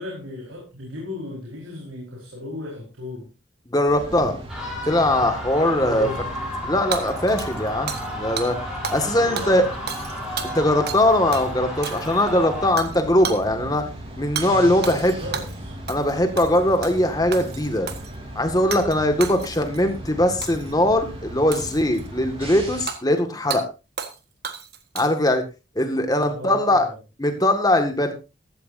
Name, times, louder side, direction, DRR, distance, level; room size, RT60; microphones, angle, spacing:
voice 1, 0.0-3.3 5.8-6.2 9.1-9.7 14.4-15.8 26.2-27.0, left 1 dB, 85° right, -2 dB, 4.6 m, -35 dB
voice 2, 3.7-4.4 4.8-6.1 6.6-8.6 8.9-9.6 10.4-13.9 14.2-15.1 15.9-17.9 18.4-23.6 24.9-25.4 25.8-26.9 27.2-28.1, left 1 dB, 20° left, 6 dB, 1.9 m, -21 dB
sound 1, 3.9-22.9, right 1 dB, 30° right, 3.4 m, -37 dB
sound 2, 4.5-12.7, left 1 dB, ahead, 5.9 m, -33 dB
Hammer / Shatter, 6.9-8.1 8.4-8.5 8.8-9.1 9.4-11.1 11.3-11.5 11.8-12.3 12.8-13.0 13.2-13.4 14.4-14.5 14.8-15.6 15.9-16.1 16.4-17.0 17.3-18.1 18.7-19.0 19.2-19.8 20.4-20.7 21.5-22.1 22.9-23.0 23.5-23.6 24.0-24.2 24.4-25.3, right 6 dB, 50° right, 1.5 m, -32 dB
15.5 x 13.5 x 2.7 m, 0.28 s
head